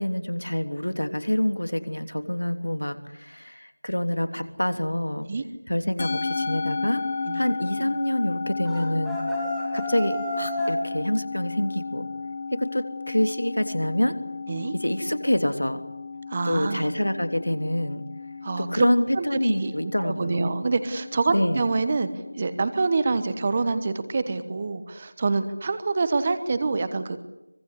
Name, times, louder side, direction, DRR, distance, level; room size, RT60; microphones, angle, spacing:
voice 1, 0.0-5.3 5.7-7.0 7.3-9.2 9.7-12.1 12.5-14.2 14.7-15.8 16.4-18.0 18.6-20.5 21.3-21.6, left 1 dB, 85° left, 8 dB, 3.1 m, -26 dB
Musical instrument, 6.0-24.5, left 4 dB, 25° left, 1.5 m, -34 dB
sound 1, 8.6-10.8, equal, ahead, 2.5 m, -30 dB
voice 2, 16.3-16.9 18.4-18.9 19.1-22.1 22.4-27.2, right 3 dB, 20° right, 12 dB, 1.1 m, -26 dB
24.5 x 22.0 x 9.8 m, 0.93 s
figure-of-eight pair, 175°, 0 cm